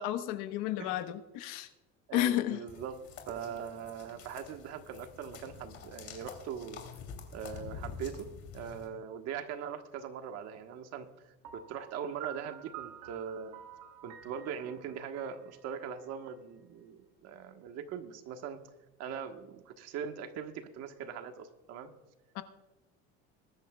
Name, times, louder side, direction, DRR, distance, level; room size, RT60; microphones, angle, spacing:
voice 1, 0.0-1.7 2.1-2.6 22.3-22.4, left 13 dB, 80° left, 8 dB, 1.3 m, -32 dB
voice 2, 2.1-6.9 7.3-13.6 14.0-18.6 19.0-21.9, right 7 dB, 55° right, 6 dB, 1.4 m, -41 dB
sound 1, 2.7-8.9, left 6 dB, 50° left, 3.1 m, -47 dB
Piano, 11.4-16.3, right 9 dB, 70° right, 1.6 m, -50 dB
21.5 x 12.5 x 2.3 m, 1.1 s
cardioid pair, 160°, 30 cm